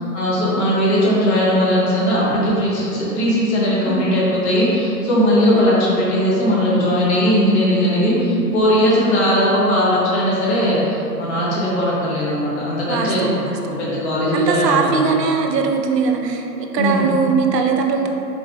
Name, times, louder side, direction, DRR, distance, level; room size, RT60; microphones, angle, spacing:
voice 1, 0.1-13.4 13.8-15.0 16.8-17.0, equal, 40° left, -7 dB, 1.1 m, -18 dB
voice 2, 12.9-13.6 14.3-18.1, right 5 dB, 75° right, 3 dB, 0.6 m, -20 dB
3.9 x 3.0 x 2.6 m, 2.9 s
hypercardioid pair, 135°, 49 cm